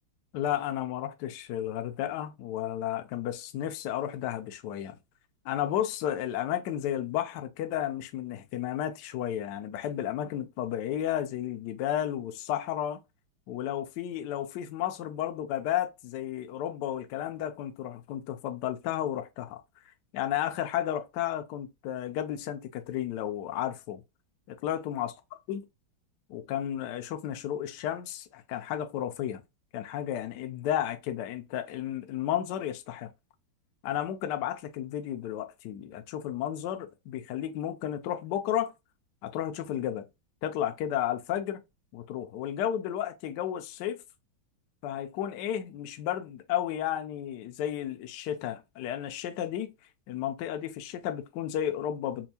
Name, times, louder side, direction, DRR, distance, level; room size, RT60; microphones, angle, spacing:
voice 1, 0.3-5.0 5.4-13.0 13.5-19.6 20.1-24.0 24.5-25.1 25.5-25.6 26.3-29.4 29.7-33.1 33.8-38.7 39.2-40.1 40.4-41.6 41.9-44.0 44.8-49.7 50.1-52.3, left 11 dB, 70° left, 1.0 m, -32 dB
4.3 x 2.3 x 2.8 m
omnidirectional pair, 2.2 m